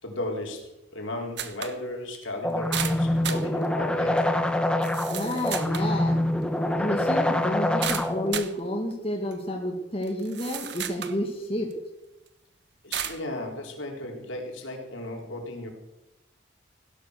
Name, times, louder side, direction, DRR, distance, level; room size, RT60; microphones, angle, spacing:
voice 1, 0.0-4.3 12.8-15.7, left 1 dB, 80° left, 1 dB, 4.1 m, -35 dB
sound 1, 1.4-1.8 2.1-2.2 2.7-3.5 4.2-4.3 4.8-5.9 7.8-8.5 9.3-9.4 10.0-11.2 11.7-11.8 12.9-13.2, right 9 dB, 60° right, 1.2 m, -33 dB
sound 2, 2.4-8.4, left 1 dB, 5° left, 1.0 m, -25 dB
voice 2, 5.1-6.2 6.8-11.7, left 1 dB, 30° left, 2 dB, 2.1 m, -30 dB
16.5 x 12.5 x 6.7 m, 0.93 s
head